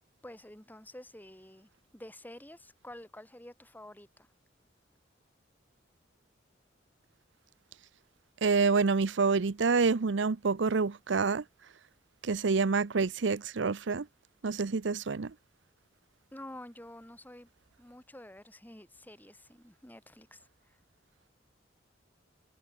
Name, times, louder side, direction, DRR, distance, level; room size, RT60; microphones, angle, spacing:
voice 1, 0.2-4.3 16.3-17.5 17.8-20.8, left 1 dB, 10° left, 2.4 m, -49 dB
voice 2, 8.4-11.4 12.2-14.1 14.4-15.3, right 4 dB, 75° right, 0.6 m, -27 dB
head